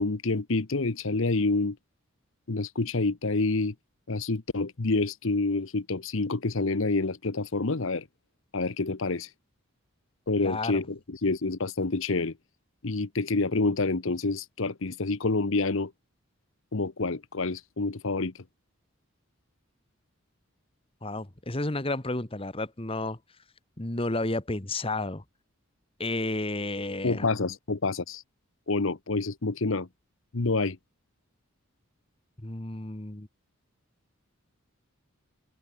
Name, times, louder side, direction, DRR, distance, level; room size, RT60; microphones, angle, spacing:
voice 1, 0.0-1.8 2.5-3.7 4.1-8.0 8.5-9.3 10.3-12.3 12.8-15.9 16.7-18.3 27.0-28.2 28.7-29.9 30.3-30.8, left 3 dB, 65° left, 1.0 m, -28 dB
voice 2, 10.4-10.8 21.0-23.2 23.8-25.2 26.0-27.3 32.4-33.3, left 2 dB, 25° left, 1.4 m, -31 dB
head